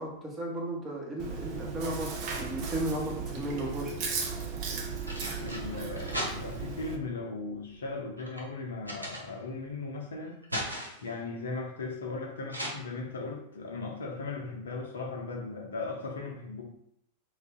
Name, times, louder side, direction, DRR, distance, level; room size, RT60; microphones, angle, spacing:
voice 1, 0.0-4.0, right 1 dB, 20° right, 1.1 m, -35 dB
Chewing mastication, 1.2-7.0, right 5 dB, 40° right, 0.6 m, -36 dB
sound 1, 4.9-6.8 7.5-9.7 10.1-11.1 12.5-12.7, equal, 85° right, 0.8 m, -39 dB
voice 2, 5.4-10.4 11.0-16.6, left 3 dB, 65° left, 0.6 m, -37 dB
3.1 x 2.5 x 3.6 m
figure-of-eight pair, 90°, 0 cm